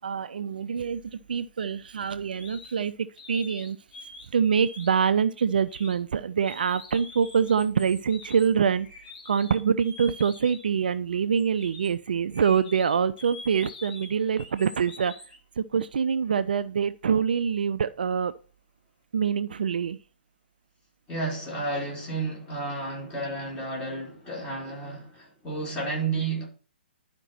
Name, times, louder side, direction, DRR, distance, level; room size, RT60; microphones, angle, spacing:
voice 1, 0.0-3.8 4.3-15.1 15.6-18.3 19.1-20.0, right 7 dB, 55° right, 0.5 m, -25 dB
sound 1, 2.4-2.7 3.2-4.3 4.5-5.1 5.7-5.9 6.4-10.8 11.4-15.4, left 2 dB, 40° left, 4.3 m, -45 dB
voice 2, 21.1-26.5, right 3 dB, 20° left, 4.3 m, -32 dB
11.5 x 5.2 x 4.2 m
figure-of-eight pair, 125°, 6 cm